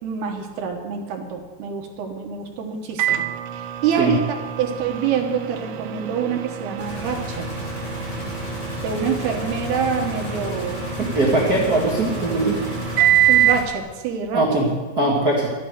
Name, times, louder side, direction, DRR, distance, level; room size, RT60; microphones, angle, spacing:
voice 1, 0.0-3.3 3.8-7.5 8.8-10.8 13.3-14.4, right 7 dB, 70° right, 2 dB, 3.0 m, -26 dB
Microwave oven, 3.0-13.8, right 12 dB, 90° right, 3.1 m, -25 dB
sound 1, 6.8-13.6, left 4 dB, 60° left, 4.4 m, -33 dB
voice 2, 11.0-12.6 14.3-15.5, right 2 dB, 40° right, -4 dB, 1.3 m, -21 dB
12.5 x 9.4 x 7.9 m, 1.3 s
omnidirectional pair, 5.1 m